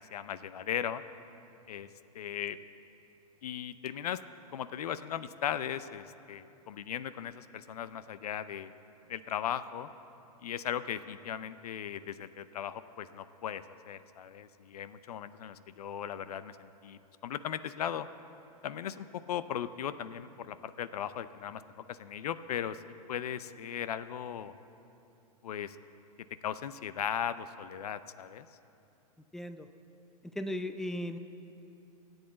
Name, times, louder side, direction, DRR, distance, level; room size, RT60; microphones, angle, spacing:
voice 1, 0.1-1.0 1.7-1.9 2.1-2.6 3.4-4.2 4.5-8.7 9.1-9.9 10.4-18.1 18.6-21.6 21.9-22.8 23.1-24.5 25.4-25.8 26.4-28.5, left 9 dB, 80° left, 14 dB, 0.6 m, -37 dB
voice 2, 29.3-29.7 30.2-31.2, left 1 dB, ahead, 9 dB, 0.5 m, -36 dB
14.0 x 8.1 x 8.5 m, 2.8 s
hypercardioid pair, 110°, 19 cm